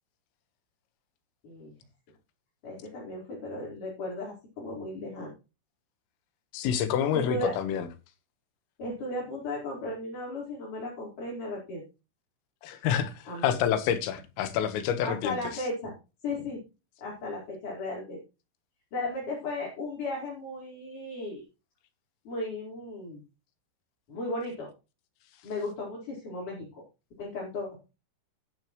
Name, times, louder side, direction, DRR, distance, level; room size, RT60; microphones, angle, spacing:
voice 1, 2.6-5.3 7.3-7.5 8.8-11.8 13.3-13.6 15.0-15.9 16.2-16.6 17.0-18.2 18.9-21.4 22.3-23.2 24.1-24.7 25.4-26.8 27.2-27.8, left 2 dB, 40° left, 5.6 m, -35 dB
voice 2, 6.5-7.9 12.6-15.4, left 9 dB, 85° left, 4.0 m, -28 dB
13.0 x 12.0 x 3.2 m
omnidirectional pair, 5.9 m